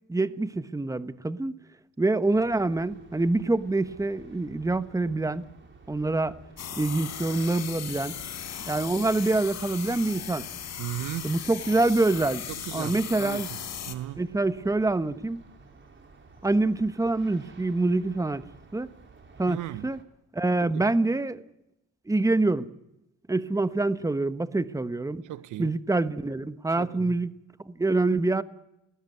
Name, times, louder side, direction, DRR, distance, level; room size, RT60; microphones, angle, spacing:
voice 1, 0.1-1.6 2.0-5.4 5.9-6.4 6.8-8.2 8.7-10.4 11.2-12.4 12.7-13.5 14.2-15.4 16.4-18.4 18.7-18.9 19.4-20.0 20.3-21.4 22.1-22.7 23.3-25.2 25.6-27.3 27.6-28.4, right 2 dB, 10° right, 1.1 m, -26 dB
sound 1, 2.3-20.0, right 4 dB, 40° right, 4.5 m, -53 dB
sound 2, 6.6-13.9, left 8 dB, 60° left, 4.1 m, -37 dB
voice 2, 10.8-11.3 12.5-13.6 13.9-14.2 19.5-19.9 20.6-20.9 25.2-25.7 26.8-27.2, right 14 dB, 80° right, 0.9 m, -36 dB
30.0 x 19.0 x 9.6 m
cardioid pair, 90°, 30 cm